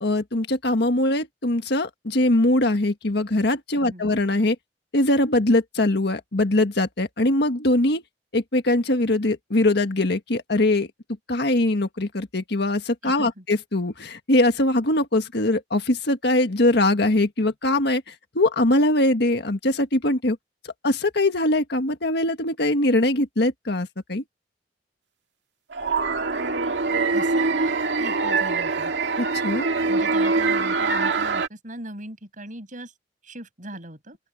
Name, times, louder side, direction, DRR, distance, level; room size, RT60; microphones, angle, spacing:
voice 1, 0.0-4.5 4.9-8.0 8.3-10.9 11.3-20.4 20.8-24.2 29.2-29.7, left 1 dB, 65° left, 1.7 m, -22 dB
voice 2, 3.7-4.1 13.0-13.4 27.1-28.9 29.9-32.9 33.2-34.2, right 1 dB, 45° right, 7.9 m, -38 dB
sound 1, 25.7-31.5, right 4 dB, 80° right, 2.2 m, -23 dB
open air
head